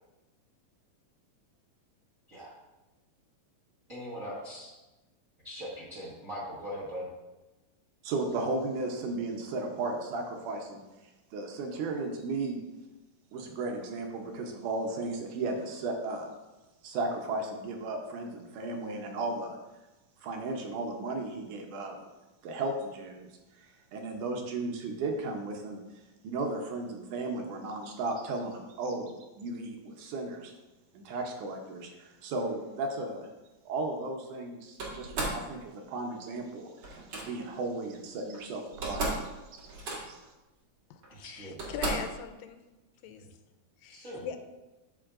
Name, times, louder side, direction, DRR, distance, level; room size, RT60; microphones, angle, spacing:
voice 1, 3.9-4.7 5.4-7.1 41.1-41.6 43.1-43.3 43.9-44.3, equal, 90° right, -7 dB, 0.7 m, -41 dB
voice 2, 8.0-12.6 13.3-16.3 16.8-19.6 20.2-22.0 22.4-23.3 23.6-25.8 26.2-30.6 30.9-33.3 33.7-39.2 39.5-39.7 40.0-40.2, right 2 dB, 75° right, 2 dB, 2.2 m, -35 dB
Slam, 34.8-35.4 36.8-37.2 38.3-38.4 38.7-39.3 39.6-40.3 41.0-41.1 41.6-42.2, right 2 dB, 45° right, 2.0 m, -34 dB
voice 3, 40.9-42.6 43.0-43.3 43.8-44.4, left 8 dB, 85° left, 8 dB, 2.3 m, -41 dB
12.5 x 5.3 x 2.5 m, 1.1 s
omnidirectional pair, 4.0 m